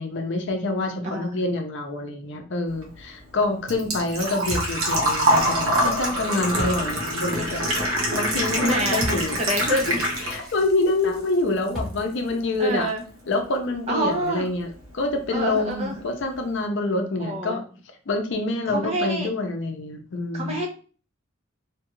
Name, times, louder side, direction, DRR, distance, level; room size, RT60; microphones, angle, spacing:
voice 1, 0.0-7.6 8.1-9.4 9.6-9.8 10.3-12.9 13.3-14.7 14.9-17.6 18.1-20.6, left 2 dB, 60° left, 4 dB, 0.6 m, -26 dB
voice 2, 1.0-1.5 7.3-7.4 8.6-9.1 9.4-10.0 12.6-13.0 13.9-14.5 15.3-16.0 17.2-17.6 18.7-19.4 20.3-20.7, right 1 dB, 30° right, 0 dB, 0.7 m, -27 dB
Engine / Trickle dribble / Fill (with liquid), 2.7-10.7 11.0-12.0 12.3-12.4 14.3-14.4 14.6-14.9 15.3-15.4 15.6-15.7, right 1 dB, 80° right, 0.9 m, -25 dB
sound 1, 4.5-4.8 6.6-6.9 9.0-9.3 9.9-10.0 11.7-12.2, equal, ahead, 1.1 m, -31 dB
2.8 x 2.3 x 3.0 m, 0.38 s
head